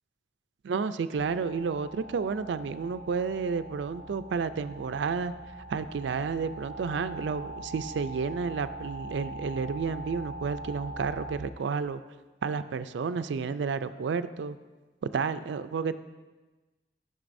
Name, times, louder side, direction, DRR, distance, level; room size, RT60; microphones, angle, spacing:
voice 1, 0.6-5.3 5.7-12.0 12.4-14.6 15.0-15.9, right 5 dB, 80° right, 12 dB, 0.4 m, -31 dB
sound 1, 1.1-11.4, right 1 dB, 45° left, 2.6 m, -42 dB
13.0 x 6.6 x 2.6 m, 1.2 s
head